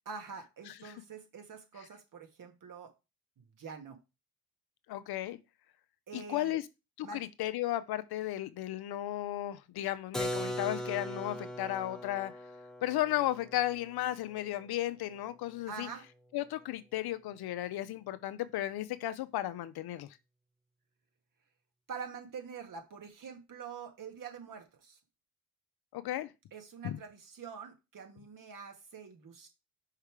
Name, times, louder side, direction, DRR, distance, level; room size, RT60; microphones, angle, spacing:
voice 1, 0.1-2.9 3.4-4.0 6.1-6.6 7.0-7.2 15.7-16.1 21.9-25.0 26.5-29.5, right 6 dB, 55° right, 1.9 m, -45 dB
voice 2, 4.9-5.4 6.1-6.6 7.0-12.3 12.8-15.9 16.3-20.1 25.9-26.3 26.8-27.0, left 14 dB, 70° left, 0.7 m, -34 dB
Keyboard (musical), 10.1-15.8, equal, ahead, 1.0 m, -40 dB
5.6 x 3.5 x 4.8 m
supercardioid pair, 75°, 39 cm